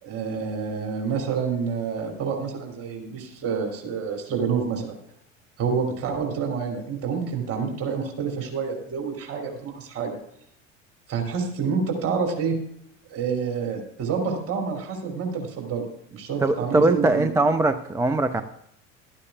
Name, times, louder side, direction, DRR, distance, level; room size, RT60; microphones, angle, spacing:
voice 1, 0.0-4.9 5.6-10.2 11.1-12.6 13.1-17.3, right 6 dB, 35° right, 2 dB, 2.9 m, -28 dB
voice 2, 16.4-18.4, right 2 dB, 10° right, 9 dB, 0.4 m, -21 dB
15.0 x 12.0 x 2.3 m, 0.72 s
figure-of-eight pair, 70°, 39 cm